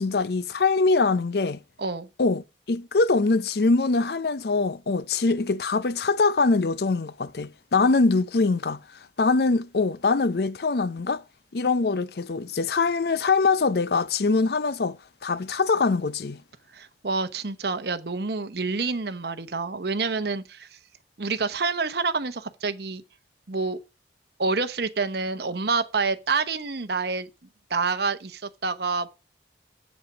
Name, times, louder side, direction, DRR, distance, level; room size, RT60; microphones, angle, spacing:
voice 1, 0.0-1.6 2.2-2.4 2.7-8.8 9.2-11.2 11.5-15.0 15.2-16.4, left 3 dB, 60° left, 0.5 m, -23 dB
voice 2, 16.7-20.8 21.2-23.0 23.5-23.8 24.4-27.3 27.7-29.1, right 4 dB, 60° right, 0.9 m, -27 dB
7.7 x 7.3 x 7.2 m
head